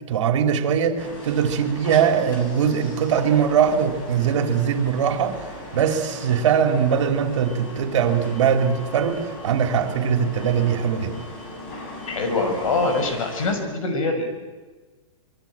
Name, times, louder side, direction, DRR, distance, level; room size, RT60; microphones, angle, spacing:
voice 1, 0.1-5.4 5.7-11.2, right 7 dB, 65° right, 5 dB, 3.7 m, -21 dB
sound 1, 1.0-13.5, left 1 dB, 40° left, 7.1 m, -38 dB
voice 2, 12.1-14.5, left 3 dB, 80° left, 7 dB, 6.4 m, -24 dB
25.0 x 22.5 x 9.0 m, 1.3 s
supercardioid pair, 170°, 17 cm